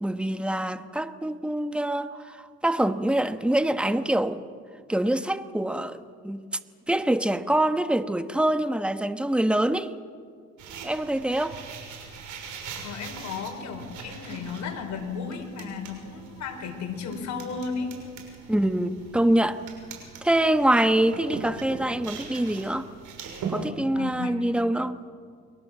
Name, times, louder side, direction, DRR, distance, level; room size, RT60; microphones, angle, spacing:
voice 1, 0.0-4.5 4.9-6.4 6.9-9.9 10.8-11.6 18.5-19.6 20.2-22.9 23.5-25.0, right 1 dB, 5° right, 1.2 m, -25 dB
sound 1, 10.6-23.7, right 5 dB, 85° right, 6.3 m, -41 dB
voice 2, 12.8-17.9 19.0-19.2 23.9-24.5, left 5 dB, 65° left, 4.9 m, -34 dB
29.5 x 23.0 x 7.7 m
cardioid pair, 90°, 30 cm